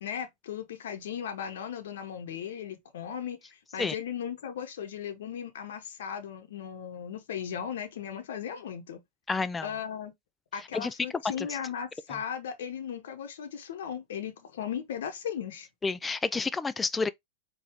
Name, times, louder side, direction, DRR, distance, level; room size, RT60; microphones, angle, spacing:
voice 1, 0.0-3.4 3.7-9.0 9.6-10.1 10.5-15.7, left 8 dB, 65° left, 1.0 m, -37 dB
voice 2, 9.3-9.7 10.7-10.9 11.4-11.5 15.8-17.1, left 4 dB, 15° left, 0.4 m, -30 dB
4.7 x 2.6 x 3.4 m
hypercardioid pair, 95°, 0 cm